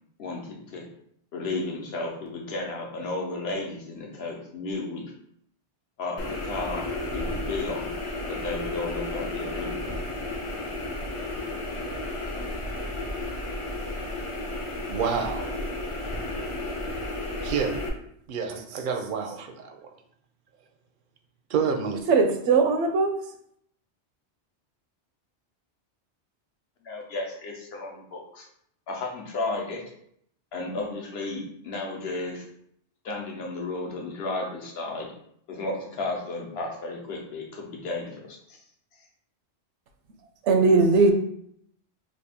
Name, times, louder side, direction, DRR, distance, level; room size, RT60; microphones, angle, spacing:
voice 1, 0.2-0.8 1.3-5.1 6.0-6.9 7.1-7.9 8.3-9.9 26.8-28.5 28.9-29.8 30.5-32.5 33.0-35.1 35.5-38.6, left 2 dB, 65° left, 0 dB, 1.0 m, -33 dB
sound 1, 6.2-17.9, left 1 dB, 50° left, 0.4 m, -32 dB
voice 2, 14.9-15.6 17.4-17.7 18.3-19.8 21.5-22.0, right 6 dB, 60° right, 5 dB, 0.6 m, -28 dB
voice 3, 22.1-23.1 40.4-41.1, right 4 dB, 80° right, 5 dB, 0.9 m, -19 dB
3.2 x 2.4 x 3.5 m, 0.69 s
omnidirectional pair, 1.2 m